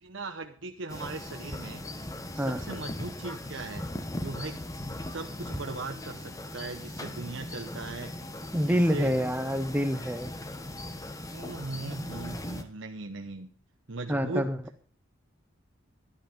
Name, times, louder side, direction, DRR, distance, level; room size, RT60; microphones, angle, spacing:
voice 1, 0.0-1.8 2.3-3.9 4.2-8.1 8.6-9.2 11.3-13.5 13.9-14.5, right 3 dB, 65° right, 5 dB, 0.9 m, -39 dB
sound 1, 0.9-12.6, left 1 dB, 15° left, 1.1 m, -39 dB
voice 2, 8.5-10.3 14.1-14.6, equal, 10° right, 10 dB, 0.9 m, -27 dB
13.5 x 11.5 x 5.2 m, 0.42 s
head